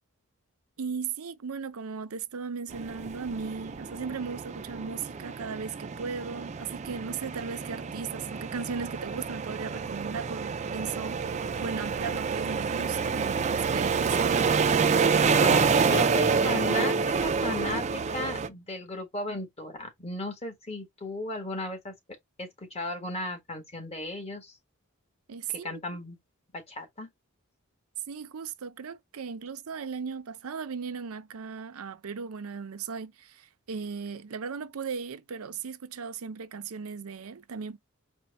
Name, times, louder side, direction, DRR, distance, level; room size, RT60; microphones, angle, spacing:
voice 1, 0.8-14.5 25.3-25.8 28.1-37.8, right 5 dB, 85° right, 0.6 m, -37 dB
sound 1, 2.7-18.5, right 5 dB, 30° right, 0.4 m, -28 dB
voice 2, 15.4-21.9 22.4-24.6 25.6-26.2 26.5-27.1, left 2 dB, 30° left, 1.6 m, -35 dB
4.4 x 2.2 x 4.1 m
head